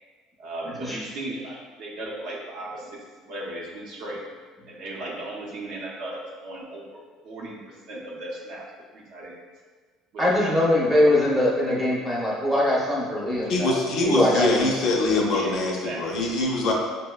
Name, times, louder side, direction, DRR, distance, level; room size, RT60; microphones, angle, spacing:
voice 1, 0.4-3.0 3.3-4.2 4.7-8.7 8.9-9.4 10.1-10.8 15.3-16.4, right 1 dB, 55° right, -3 dB, 0.6 m, -37 dB
voice 2, 10.2-13.8 14.0-14.5 14.8-14.9, left 1 dB, 5° right, -5 dB, 0.6 m, -22 dB
voice 3, 13.5-16.7, left 2 dB, 45° left, -1 dB, 0.5 m, -24 dB
5.3 x 2.0 x 2.2 m, 1.4 s
cardioid pair, 175°, 0 cm